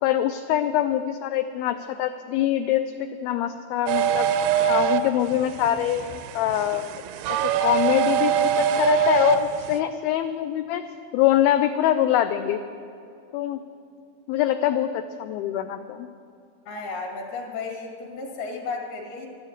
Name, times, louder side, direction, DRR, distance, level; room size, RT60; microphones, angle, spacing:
voice 1, 0.0-2.9 3.2-4.3 4.7-6.1 6.3-6.9 7.6-10.8 11.1-12.6 13.3-13.6 14.3-16.1, left 11 dB, 90° left, 9 dB, 2.1 m, -24 dB
sound 1, 3.9-9.8, right 9 dB, 85° right, 2.0 m, -24 dB
voice 2, 16.7-19.3, left 4 dB, 65° left, 2 dB, 3.9 m, -33 dB
13.0 x 12.5 x 8.0 m, 2.5 s
omnidirectional pair, 4.9 m